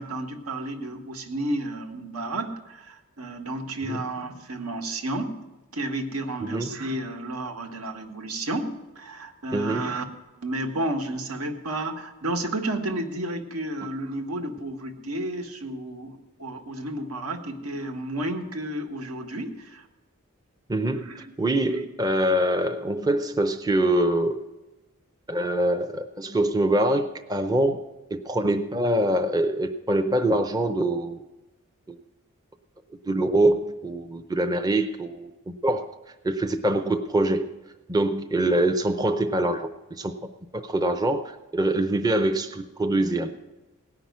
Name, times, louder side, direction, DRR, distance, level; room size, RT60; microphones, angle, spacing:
voice 1, 0.0-5.4 5.7-10.0 10.4-19.9 21.1-21.2, right 1 dB, 80° right, 4 dB, 1.5 m, -32 dB
voice 2, 9.5-9.9 20.7-24.4 25.3-27.8 28.1-31.2 31.9-32.0 33.1-35.3 35.6-35.9 36.2-37.5 37.9-40.1 40.5-43.3, right 1 dB, 15° right, 6 dB, 0.5 m, -24 dB
17.5 x 5.8 x 9.3 m, 1.1 s
head